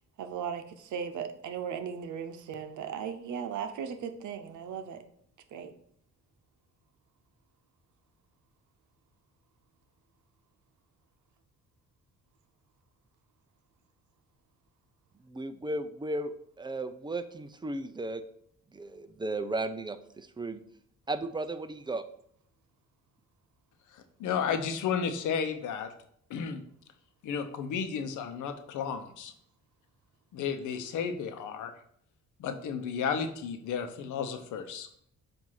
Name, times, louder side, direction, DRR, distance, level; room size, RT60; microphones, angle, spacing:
voice 1, 0.2-5.0 5.5-5.7, right 7 dB, 75° right, 0.8 m, -37 dB
voice 2, 15.2-18.2 18.7-20.6 21.1-22.0, right 2 dB, 15° right, 0.5 m, -35 dB
voice 3, 23.9-25.9 26.3-26.6 27.2-29.3 30.3-31.7 32.4-34.9, left 6 dB, 85° left, 0.9 m, -33 dB
7.6 x 2.7 x 5.7 m
cardioid pair, 90°, 30 cm